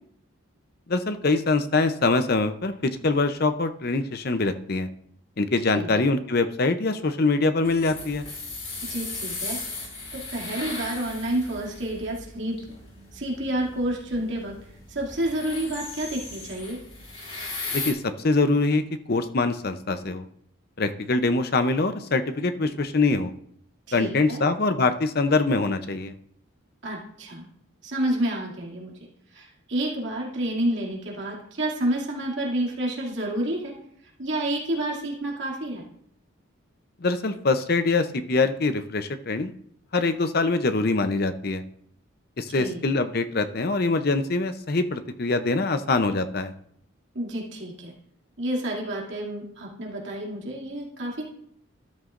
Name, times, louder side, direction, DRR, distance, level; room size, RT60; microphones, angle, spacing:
voice 1, 0.9-4.9 5.4-8.2 17.7-20.2 20.8-23.3 23.9-26.1 37.0-39.5 39.9-41.6 42.4-46.5, left 3 dB, 45° left, 9 dB, 0.7 m, -24 dB
sound 1, 7.6-17.9, left 3 dB, 30° left, 2.9 m, -37 dB
voice 2, 8.8-9.6 10.1-12.6 13.1-14.5 14.9-16.8 23.9-24.4 26.8-27.5 27.8-28.9 29.3-33.7 34.2-35.8 42.5-42.8 47.1-47.9 48.4-51.3, right 1 dB, 60° right, -3 dB, 2.5 m, -29 dB
13.0 x 12.5 x 2.5 m, 0.70 s
head